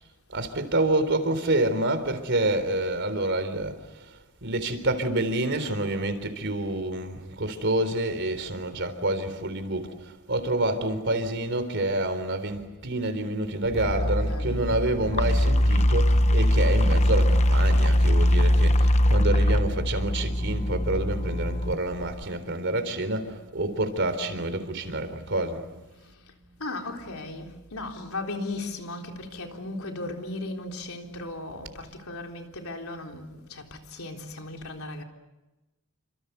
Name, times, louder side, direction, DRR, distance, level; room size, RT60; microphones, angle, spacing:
voice 1, 0.3-4.1 4.4-25.6 25.9-26.0, right 2 dB, 55° right, 3.8 m, -28 dB
sound 1, 13.6-22.2, equal, 30° left, 0.9 m, -22 dB
voice 2, 14.0-14.7 26.0-26.2 26.6-35.0, left 2 dB, 75° left, 3.8 m, -37 dB
29.5 x 26.5 x 6.9 m
head